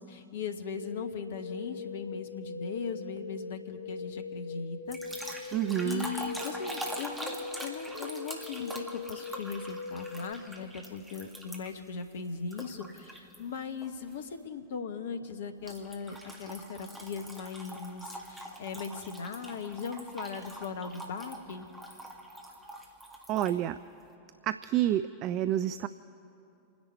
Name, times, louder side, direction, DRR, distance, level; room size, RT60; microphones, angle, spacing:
voice 1, 0.0-21.7, left 5 dB, 60° left, 8 dB, 1.2 m, -39 dB
sound 1, 0.8-10.3, left 4 dB, 85° right, 1.4 m, -41 dB
sound 2, 4.9-11.9 12.5-13.4 13.8-14.1 15.7-23.6, right 1 dB, 5° right, 1.9 m, -43 dB
voice 2, 5.5-6.1 23.3-23.8 24.4-25.9, right 12 dB, 40° right, 13 dB, 0.4 m, -29 dB
29.5 x 10.5 x 4.4 m, 2.7 s
figure-of-eight pair, 90°, 0 cm